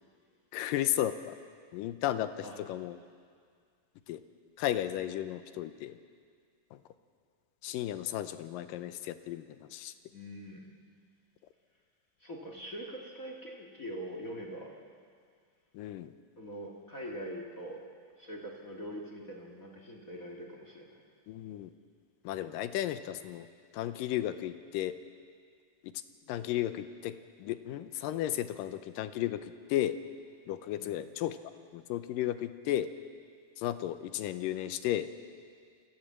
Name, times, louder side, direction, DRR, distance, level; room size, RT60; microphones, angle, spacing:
voice 1, 0.5-1.4 1.7-3.0 4.1-4.2 4.6-6.0 6.7-6.8 7.6-9.9 15.7-16.1 21.3-21.7 22.2-23.5 23.7-25.0 25.8-25.9 26.3-29.4 29.7-30.0 30.5-31.4 31.7-32.9 33.6-35.1, left 12 dB, 80° left, 11 dB, 2.4 m, -34 dB
voice 2, 10.1-10.7 12.2-14.7 16.4-17.8 18.2-20.9 30.8-31.0, equal, 35° left, 0 dB, 1.5 m, -43 dB
25.0 x 15.5 x 7.4 m, 2.1 s
omnidirectional pair, 4.0 m